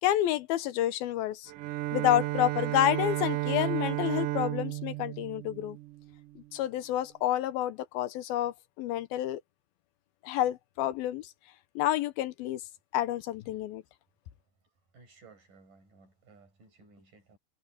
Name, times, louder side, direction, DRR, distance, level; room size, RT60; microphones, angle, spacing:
voice 1, 0.0-1.5 1.9-5.8 6.4-9.4 10.2-11.3 11.8-12.6 12.9-13.8, left 13 dB, 80° left, 2.7 m, -29 dB
Bowed string instrument, 1.5-6.4, right 18 dB, 80° right, 1.8 m, -33 dB
voice 2, 14.9-17.4, right 4 dB, 55° right, 9.5 m, -58 dB
omnidirectional pair, 4.4 m